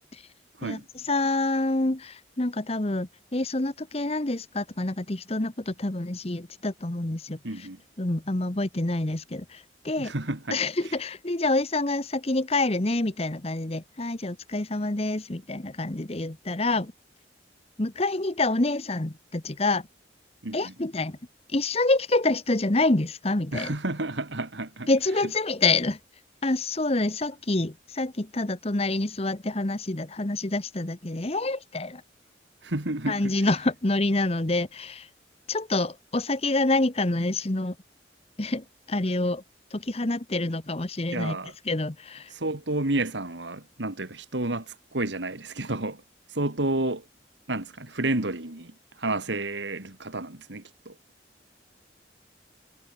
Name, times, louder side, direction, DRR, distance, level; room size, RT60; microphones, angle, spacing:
voice 1, 1.1-7.4 8.0-10.1 10.5-16.9 17.8-19.9 20.5-21.2 21.5-23.7 24.9-26.0 26.4-32.0 33.1-35.1 35.5-37.7 38.4-39.4 39.7-41.4 41.7-42.3, left 2 dB, 35° left, 1.2 m, -27 dB
voice 2, 7.4-7.8 10.0-10.6 20.4-20.7 23.5-24.9 25.2-25.3 32.6-33.3 41.1-41.5 42.3-46.0 46.3-47.1 47.5-50.9, right 2 dB, 80° right, 2.4 m, -30 dB
head